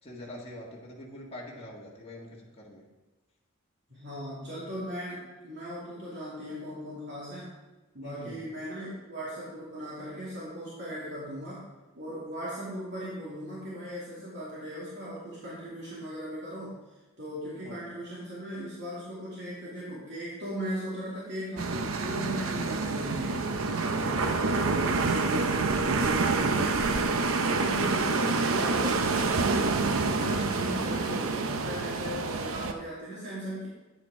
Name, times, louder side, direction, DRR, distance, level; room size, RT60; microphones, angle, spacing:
voice 1, 0.0-2.8 8.0-8.4 17.6-17.8 23.9-24.4, left 1 dB, 30° left, -3 dB, 1.6 m, -44 dB
voice 2, 3.9-7.5 7.9-11.6 11.9-16.8 17.2-23.4 23.9-26.8 27.3-29.6 29.9-33.7, equal, 55° right, -8 dB, 2.6 m, -38 dB
sound 1, 21.6-32.7, right 3 dB, 80° right, 0.7 m, -27 dB
9.5 x 8.5 x 3.7 m, 1.2 s
head